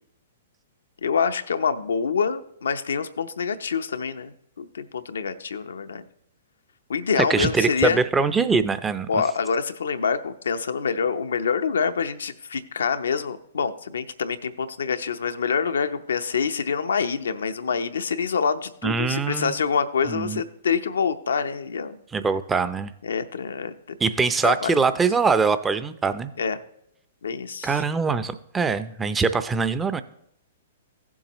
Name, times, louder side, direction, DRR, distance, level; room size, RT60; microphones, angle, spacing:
voice 1, 1.0-6.0 6.9-8.0 9.1-22.0 23.0-23.7 24.4-24.7 26.4-26.6 27.2-27.8, left 6 dB, 80° left, 9 dB, 0.6 m, -26 dB
voice 2, 7.2-9.1 18.8-19.5 20.1-20.4 22.1-22.9 24.0-26.3 27.6-30.0, right 5 dB, 15° right, 12 dB, 0.5 m, -23 dB
16.0 x 7.3 x 3.0 m, 0.76 s
hypercardioid pair, 125°, 0 cm